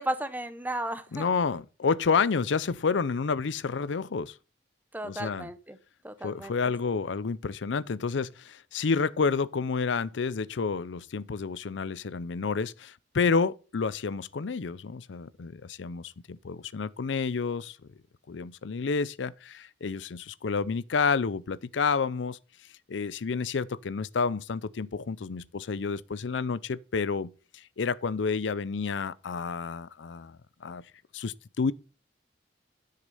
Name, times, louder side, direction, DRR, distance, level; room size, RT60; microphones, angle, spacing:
voice 1, 0.0-1.2 4.9-5.8 6.0-6.5, right 1 dB, 10° right, 0.9 m, -34 dB
voice 2, 1.1-4.4 5.0-5.5 6.2-17.8 18.3-22.4 22.9-30.8 31.1-31.7, left 5 dB, 80° left, 0.5 m, -30 dB
10.5 x 6.6 x 5.4 m
head